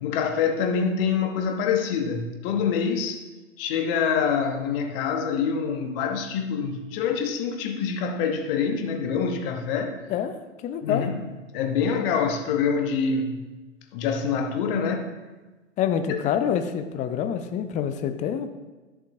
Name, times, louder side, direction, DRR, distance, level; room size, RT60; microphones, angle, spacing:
voice 1, 0.0-3.2 3.6-9.9 10.8-11.3 11.5-13.4 13.9-15.2, left 6 dB, 45° left, 5 dB, 1.0 m, -25 dB
voice 2, 10.6-11.1 15.8-18.5, left 8 dB, 20° left, 9 dB, 0.5 m, -26 dB
11.0 x 7.4 x 2.7 m, 1.2 s
figure-of-eight pair, 100°, 39 cm